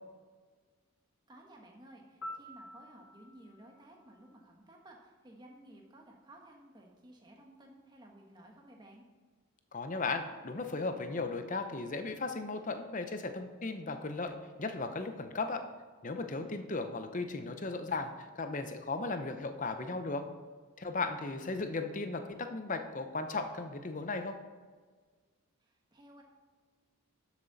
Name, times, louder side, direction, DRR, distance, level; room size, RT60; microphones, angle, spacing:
voice 1, 1.3-9.0 25.6-26.2, right 1 dB, 20° right, 0 dB, 1.3 m, -56 dB
Piano, 2.2-5.1 13.3-13.5, left 1 dB, 65° left, 1.0 m, -50 dB
voice 2, 9.7-15.6 16.0-20.2 20.8-24.4, left 3 dB, 35° left, 7 dB, 0.7 m, -36 dB
12.0 x 7.4 x 4.1 m, 1.5 s
head